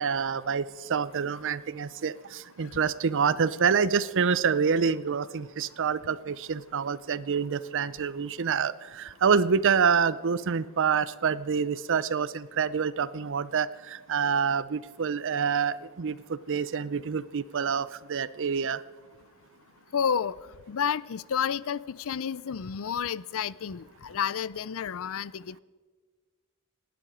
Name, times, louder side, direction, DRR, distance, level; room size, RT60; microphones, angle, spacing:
voice 1, 0.0-18.8, right 6 dB, 60° right, 17 dB, 0.6 m, -27 dB
voice 2, 19.9-20.3 20.7-25.6, left 7 dB, 65° left, 20 dB, 0.5 m, -30 dB
27.5 x 10.5 x 5.0 m, 1.5 s
head